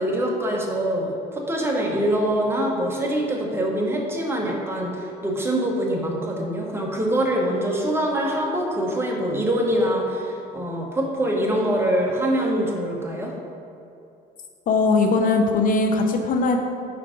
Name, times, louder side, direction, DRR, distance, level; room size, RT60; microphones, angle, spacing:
voice 1, 0.0-13.3, right 1 dB, 15° right, -1 dB, 0.9 m, -24 dB
voice 2, 14.7-16.6, left 3 dB, 55° left, 4 dB, 0.5 m, -20 dB
4.8 x 4.5 x 5.0 m, 2.6 s
cardioid pair, 110°, 17 cm